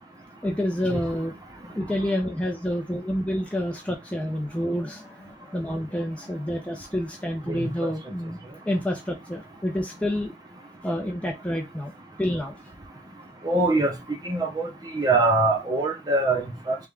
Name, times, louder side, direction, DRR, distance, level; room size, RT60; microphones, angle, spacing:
voice 1, 0.4-1.3 1.7-8.4 8.7-10.3 10.8-11.9 12.2-12.5, equal, 10° left, 0.6 m, -28 dB
voice 2, 7.5-7.9 13.4-13.9 14.2-14.7 14.9-16.8, right 2 dB, 20° right, 0.8 m, -23 dB
3.5 x 3.1 x 3.4 m
head